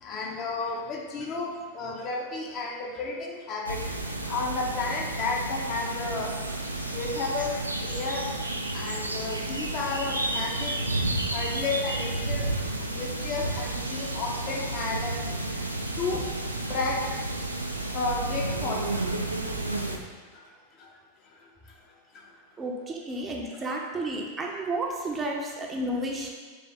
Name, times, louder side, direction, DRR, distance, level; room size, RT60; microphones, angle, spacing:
voice 1, 0.0-3.8 4.3-6.3 6.9-7.6 7.8-8.2 8.7-10.8 11.3-12.5 12.9-15.1 16.0-16.3 16.7-17.0 17.9-18.8, left 3 dB, 35° left, -1 dB, 0.6 m, -32 dB
sound 1, 3.6-20.0, right 2 dB, 85° right, 0.3 m, -31 dB
voice 2, 22.6-26.3, right 1 dB, 20° right, -1 dB, 0.5 m, -32 dB
3.4 x 3.3 x 3.7 m, 1.4 s
figure-of-eight pair, 90°, 0 cm